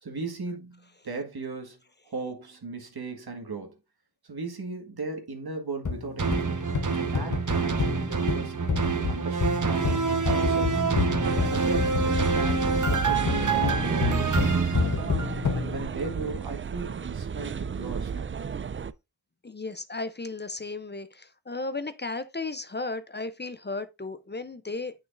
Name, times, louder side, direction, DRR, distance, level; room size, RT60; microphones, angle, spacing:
voice 1, 0.0-1.8 2.0-3.7 4.2-8.5 9.1-9.9 10.2-11.0 11.4-15.0 15.5-18.3, right 3 dB, 80° right, 1.8 m, -37 dB
sound 1, 5.9-15.8, left 5 dB, 55° left, 1.0 m, -30 dB
sound 2, 6.2-15.6 16.0-16.1, right 5 dB, 55° right, 1.0 m, -27 dB
sound 3, 11.2-18.9, right 6 dB, 35° right, 0.4 m, -33 dB
voice 2, 19.4-24.9, left 3 dB, 30° left, 0.6 m, -35 dB
8.6 x 6.2 x 2.5 m
wide cardioid pair, 55°, 38 cm